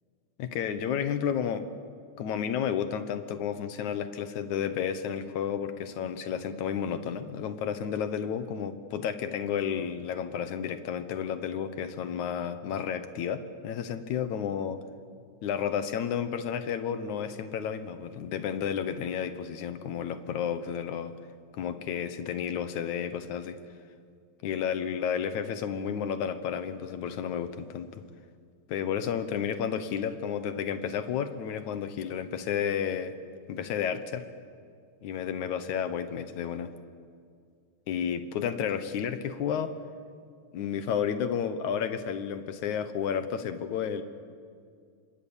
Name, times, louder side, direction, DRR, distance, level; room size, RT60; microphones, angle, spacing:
voice 1, 0.4-1.6 2.2-14.8 15.4-21.1 21.5-23.6 24.4-28.0 28.7-33.1 33.5-34.3 35.0-36.7 37.9-39.7 40.5-44.0, left 8 dB, 75° left, 10 dB, 2.5 m, -31 dB
28.0 x 24.5 x 7.2 m, 2.3 s
omnidirectional pair, 3.5 m